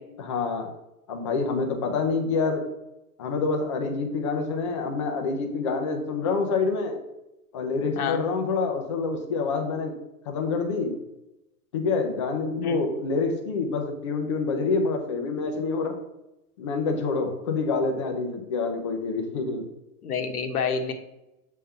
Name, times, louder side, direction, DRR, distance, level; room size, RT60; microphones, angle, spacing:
voice 1, 0.2-0.7 1.1-2.6 3.2-7.0 7.5-10.0 10.3-10.9 11.7-16.0 16.6-19.6, left 4 dB, 20° left, 3 dB, 0.5 m, -27 dB
voice 2, 8.0-8.3 12.6-12.8 20.0-20.9, left 6 dB, 75° left, 5 dB, 1.3 m, -28 dB
7.3 x 3.7 x 5.5 m, 0.92 s
hypercardioid pair, 170°, 45 cm